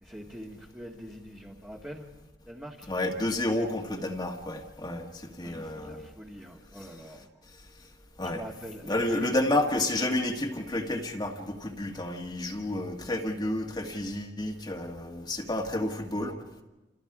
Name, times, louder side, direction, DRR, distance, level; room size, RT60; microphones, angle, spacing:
voice 1, 0.0-2.1 2.5-2.9 5.4-7.3 8.2-9.4, equal, 10° right, 1.9 m, -44 dB
voice 2, 2.9-6.1 8.2-8.5 8.9-16.3, left 1 dB, 25° left, 1.8 m, -30 dB
29.5 x 27.0 x 5.0 m
head